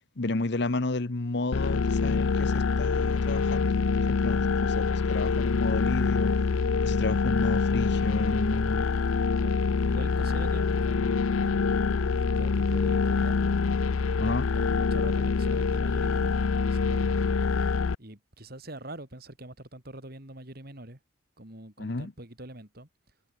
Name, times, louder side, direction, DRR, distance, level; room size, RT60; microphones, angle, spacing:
voice 1, 0.2-3.7 4.0-6.3 6.8-8.9 14.2-14.5 21.8-22.1, left 2 dB, 55° left, 1.0 m, -31 dB
sound 1, 1.5-17.9, left 4 dB, 85° left, 0.5 m, -25 dB
voice 2, 9.4-13.4 13.9-16.4 16.7-17.3 18.0-21.0 21.4-22.9, right 1 dB, 45° right, 3.6 m, -44 dB
head